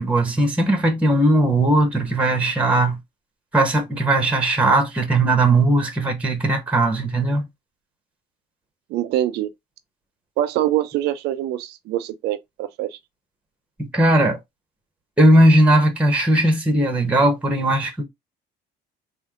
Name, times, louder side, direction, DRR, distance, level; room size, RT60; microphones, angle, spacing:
voice 1, 0.0-3.0 3.5-7.5 13.8-14.4 15.2-18.0, right 1 dB, 5° right, 1.2 m, -18 dB
voice 2, 8.9-9.5 10.4-13.0, right 13 dB, 80° right, 0.5 m, -24 dB
3.5 x 2.7 x 3.6 m
cardioid pair, 110°, 17 cm